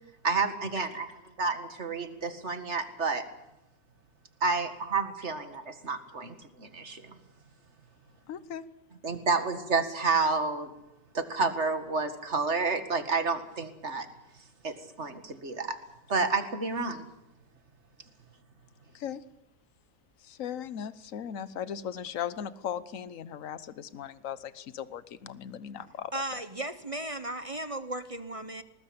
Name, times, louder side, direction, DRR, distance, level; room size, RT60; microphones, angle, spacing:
voice 1, 0.2-1.1 1.4-3.3 4.4-7.2 9.0-10.7 11.1-14.1 14.6-15.8 16.1-17.1, right 4 dB, 45° right, 9 dB, 2.2 m, -30 dB
voice 2, 8.3-8.6 18.9-19.2 20.2-26.4, left 9 dB, 60° left, 16 dB, 1.3 m, -38 dB
voice 3, 26.1-28.6, right 1 dB, 25° right, 12 dB, 0.9 m, -36 dB
20.0 x 20.0 x 8.7 m, 0.91 s
omnidirectional pair, 1.7 m